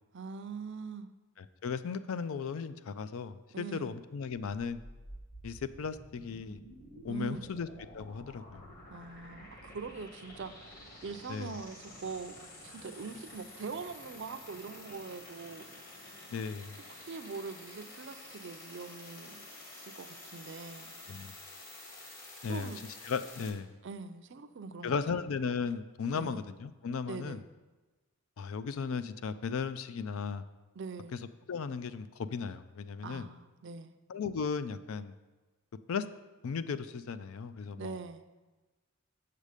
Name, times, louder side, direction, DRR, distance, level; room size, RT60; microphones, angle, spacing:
voice 1, 0.1-1.1 3.5-3.9 7.1-7.5 8.9-10.5 11.0-15.7 16.9-20.9 22.5-22.8 23.8-25.0 26.1-26.4 27.1-27.4 30.7-31.1 33.0-34.0 37.8-38.2, right 5 dB, 55° right, 8 dB, 0.4 m, -43 dB
voice 2, 1.6-4.8 5.4-6.6 7.0-7.7 7.9-8.7 11.3-11.5 16.3-16.8 21.1-21.3 22.4-22.7 23.0-23.7 24.8-27.4 28.4-30.4 31.5-33.3 34.1-35.1 35.9-36.0 36.4-38.0, left 5 dB, 70° left, 12 dB, 0.4 m, -36 dB
sound 1, 4.3-23.5, left 1 dB, 40° left, 1.5 m, -50 dB
7.3 x 6.7 x 5.0 m, 1.2 s
head